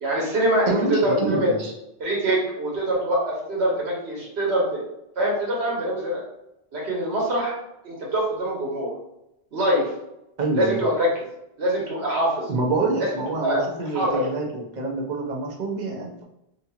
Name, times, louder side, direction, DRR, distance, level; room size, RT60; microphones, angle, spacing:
voice 1, 0.0-1.5 2.0-4.8 5.2-6.2 6.7-7.5 7.8-8.9 9.5-9.9 10.5-11.3 11.6-12.5 13.0-13.1 13.4-13.6 13.9-14.3, right 1 dB, 80° right, -3 dB, 1.2 m, -24 dB
voice 2, 0.7-1.7 10.4-10.8 12.5-16.2, right 3 dB, 50° right, -1 dB, 0.6 m, -26 dB
2.7 x 2.3 x 2.7 m, 0.84 s
omnidirectional pair, 1.1 m